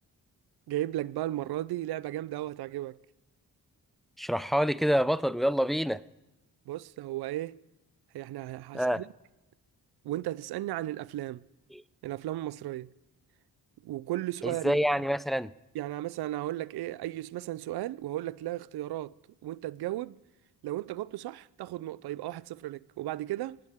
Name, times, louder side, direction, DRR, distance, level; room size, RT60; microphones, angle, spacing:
voice 1, 0.7-3.0 6.7-7.6 8.1-9.1 10.0-11.4 12.0-12.9 13.8-14.8 15.7-19.1 19.4-20.2 20.6-23.6, right 14 dB, 70° right, 0.5 m, -35 dB
voice 2, 4.2-6.0 8.7-9.0 11.7-11.8 14.4-15.5, equal, ahead, 0.4 m, -27 dB
25.0 x 9.8 x 3.6 m
cardioid pair, 60°, 39 cm